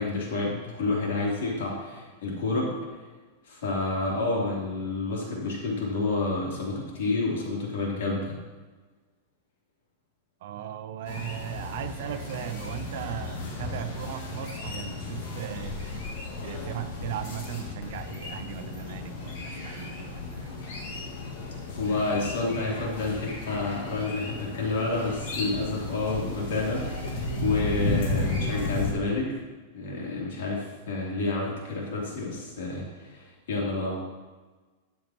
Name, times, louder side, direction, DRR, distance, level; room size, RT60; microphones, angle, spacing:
voice 1, 0.0-2.7 3.5-8.3 21.7-29.4 29.7-34.0, left 3 dB, 80° left, -4 dB, 3.3 m, -29 dB
voice 2, 10.4-16.0 16.4-20.5, right 11 dB, 55° right, 9 dB, 0.7 m, -37 dB
sound 1, 11.1-28.9, left 2 dB, 50° left, 2.0 m, -34 dB
13.0 x 8.2 x 3.1 m, 1.3 s
supercardioid pair, 170°, 0 cm